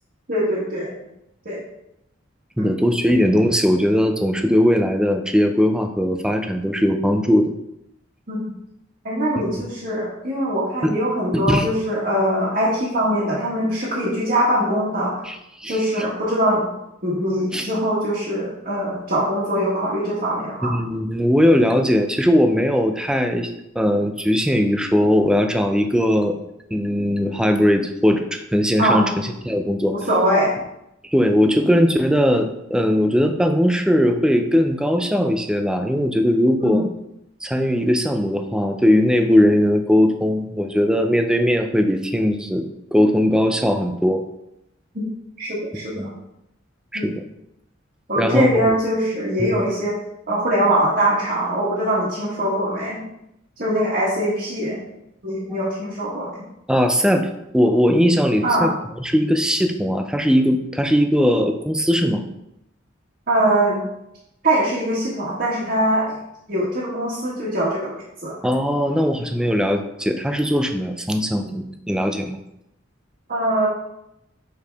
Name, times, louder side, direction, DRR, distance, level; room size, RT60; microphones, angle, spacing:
voice 1, 0.3-0.9 1.4-1.6 2.6-2.7 8.3-8.4 9.0-15.2 15.6-16.7 17.0-20.7 28.8-29.1 29.9-30.5 36.6-36.9 44.9-45.1 45.4-46.1 46.9-47.1 48.1-50.0 50.3-53.0 53.6-54.8 55.2-56.4 58.4-58.7 63.3-63.8 64.4-66.2 66.5-67.9 68.2-68.4 73.3-73.7, right 1 dB, 50° right, -9 dB, 1.6 m, -22 dB
voice 2, 2.6-7.5 9.4-9.5 10.8-11.0 11.3-11.7 15.2-15.8 17.5-17.7 20.6-23.5 23.8-26.4 26.7-29.9 31.1-36.8 37.4-44.2 46.0-46.1 46.9-47.3 48.2-48.7 49.4-49.5 56.7-58.7 59.0-62.2 68.4-72.4, equal, 5° right, 6 dB, 0.5 m, -19 dB
6.9 x 4.7 x 3.5 m, 0.84 s
head